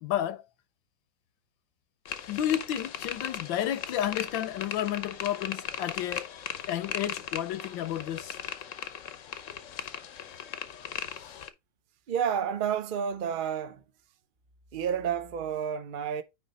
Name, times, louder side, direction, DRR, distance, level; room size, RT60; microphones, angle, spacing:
voice 1, 0.0-0.4 2.3-6.3 6.7-8.4, left 11 dB, 85° left, 1.5 m, -31 dB
sound 1, 2.1-11.5, left 9 dB, 60° left, 0.8 m, -38 dB
voice 2, 12.1-13.8 14.7-16.2, right 8 dB, 65° right, 0.5 m, -30 dB
9.6 x 3.3 x 4.0 m
omnidirectional pair, 2.0 m